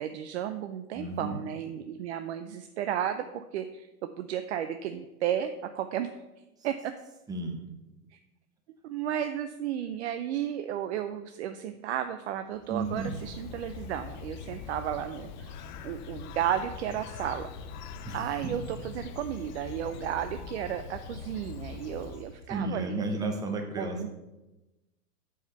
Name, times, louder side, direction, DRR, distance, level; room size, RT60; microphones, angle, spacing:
voice 1, 0.0-6.1 6.6-6.9 8.1-8.2 8.8-15.5 15.8-17.5 18.1-23.0 23.8-24.1, right 10 dB, 45° right, 9 dB, 0.5 m, -33 dB
voice 2, 0.9-1.4 7.3-7.7 12.7-13.1 18.0-18.5 22.5-24.1, right 2 dB, 10° right, 4 dB, 0.7 m, -33 dB
Bird, 12.5-22.6, left 6 dB, 30° left, 0.5 m, -43 dB
7.1 x 4.8 x 6.6 m, 1.0 s
hypercardioid pair, 135°, 47 cm